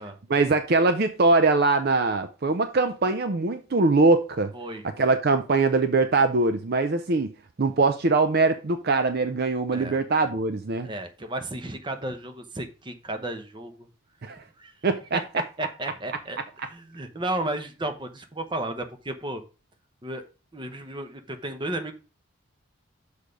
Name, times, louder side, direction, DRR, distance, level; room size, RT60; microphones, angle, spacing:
voice 1, 0.3-4.5 5.0-7.3 7.6-10.9 14.2-14.4 14.8-15.2, right 3 dB, 45° right, 0.5 m, -22 dB
voice 2, 10.8-13.9 14.6-14.7 15.6-16.4 16.7-19.4 20.0-20.2 20.5-21.9, right 1 dB, 20° right, 0.9 m, -33 dB
6.5 x 5.0 x 5.2 m
head